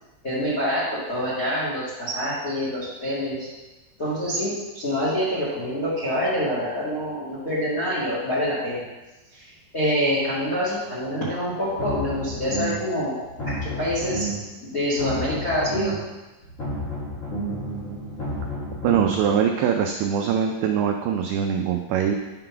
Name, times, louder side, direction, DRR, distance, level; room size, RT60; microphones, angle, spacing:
voice 1, 0.2-3.5 4.0-8.8 9.3-14.3 14.6-15.9, equal, 40° left, -8 dB, 1.3 m, -26 dB
sound 1, 11.6-12.9 13.2-14.5 14.8-16.1 16.4-19.3, right 1 dB, 75° left, 0.7 m, -31 dB
voice 2, 18.8-22.1, right 8 dB, 85° right, 3 dB, 2.2 m, -22 dB
9.9 x 3.8 x 5.7 m, 1.1 s
omnidirectional pair, 5.1 m